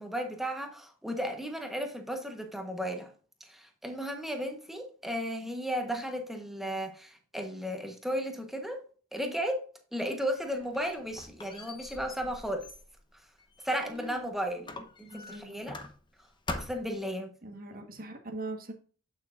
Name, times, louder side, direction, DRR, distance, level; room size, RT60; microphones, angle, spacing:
voice 1, 0.0-3.1 3.4-8.8 9.1-9.6 9.9-12.7 13.6-15.8 16.5-17.3, equal, ahead, 1.1 m, -34 dB
Squeak, 10.4-14.2 14.7-16.2 16.5-17.0, left 2 dB, 20° left, 0.8 m, -43 dB
voice 2, 13.8-14.3 15.1-15.7 17.4-18.7, right 2 dB, 45° right, 1.4 m, -42 dB
8.6 x 7.5 x 2.5 m
head